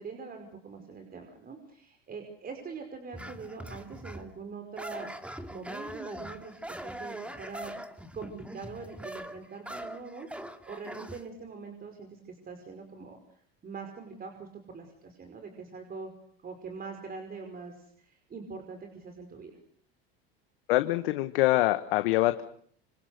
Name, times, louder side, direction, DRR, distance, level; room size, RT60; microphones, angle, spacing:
voice 1, 0.0-7.7 8.1-10.3 10.7-16.1 16.4-19.5, right 4 dB, 30° right, 5 dB, 5.4 m, -43 dB
sound 1, 3.1-4.3 4.8-11.2, right 1 dB, 5° right, 2.4 m, -42 dB
voice 2, 20.7-22.4, left 17 dB, 80° left, 10 dB, 1.4 m, -25 dB
26.5 x 25.5 x 6.8 m, 0.62 s
supercardioid pair, 95°, 29 cm